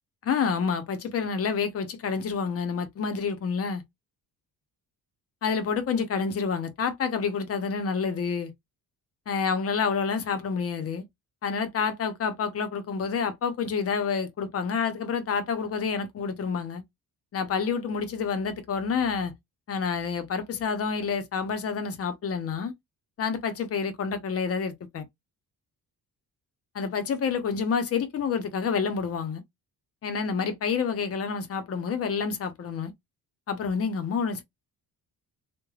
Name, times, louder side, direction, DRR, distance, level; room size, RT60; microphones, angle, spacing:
voice 1, 0.2-3.8 5.4-8.5 9.3-11.0 11.4-16.8 17.3-19.3 19.7-22.7 23.2-25.1 26.7-29.4 30.0-32.9 33.5-34.4, left 6 dB, 40° left, 0.6 m, -28 dB
3.2 x 2.2 x 2.2 m
cardioid pair, 175°, 38 cm